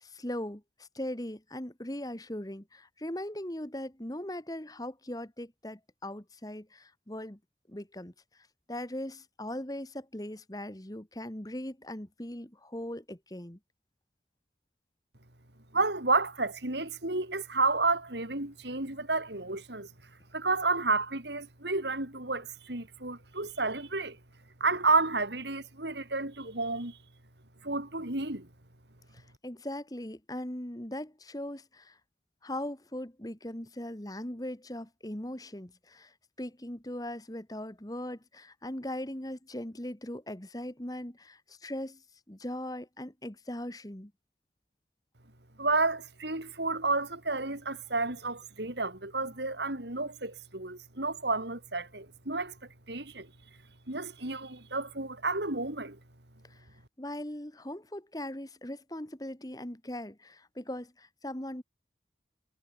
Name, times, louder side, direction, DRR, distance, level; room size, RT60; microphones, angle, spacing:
voice 1, 0.0-7.4 7.7-8.1 8.7-13.6 29.1-32.0 32.4-42.0 42.3-44.1 56.5-56.6 57.0-61.6, left 1 dB, 20° left, 1.6 m, -39 dB
voice 2, 15.7-19.9 20.3-24.2 24.6-27.0 27.6-28.5 45.6-52.5 52.9-53.3 53.9-56.0, right 3 dB, 70° right, 4.1 m, -31 dB
head